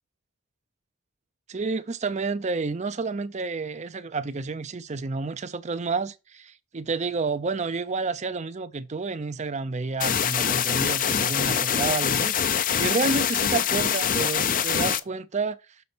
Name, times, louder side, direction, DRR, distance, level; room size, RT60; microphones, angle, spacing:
voice 1, 1.5-15.6, right 4 dB, 35° right, 0.5 m, -30 dB
sound 1, 10.0-15.0, left 8 dB, 40° left, 0.5 m, -24 dB
6.9 x 4.0 x 6.0 m
head